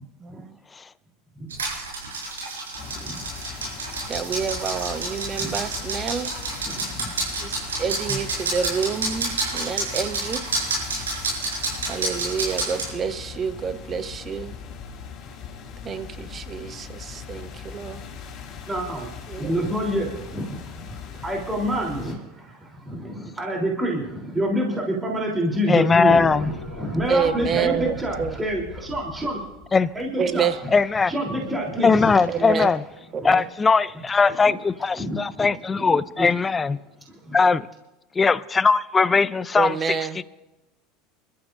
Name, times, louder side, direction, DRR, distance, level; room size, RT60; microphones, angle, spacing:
voice 1, 0.2-0.5 4.1-6.3 7.4-10.4 11.9-14.5 15.8-18.0 19.3-19.5 27.1-28.4 30.2-30.6 32.3-32.7 33.1-33.4 39.6-40.2, right 6 dB, 35° right, 12 dB, 1.0 m, -28 dB
sound 1, 1.5-12.9, right 3 dB, 85° right, 6.2 m, -29 dB
sound 2, 2.7-22.1, left 6 dB, 45° left, 4.3 m, -39 dB
voice 2, 6.6-7.1 8.1-8.2 18.7-19.1 19.4-20.6 21.1-22.2 22.9-29.4 30.0-30.5 31.1-32.2 33.2-33.3 35.0-35.5 35.8-36.3 37.3-37.4, right 1 dB, 15° right, -1 dB, 3.6 m, -27 dB
voice 3, 25.7-26.5 29.7-29.9 30.7-31.1 31.8-32.8 33.2-36.8 37.3-37.7 38.1-40.2, left 4 dB, 20° left, 18 dB, 0.6 m, -20 dB
sound 3, 25.9-32.2, left 4 dB, 85° left, 2.0 m, -40 dB
28.5 x 13.0 x 2.7 m, 1.0 s
hypercardioid pair, 80°, 0 cm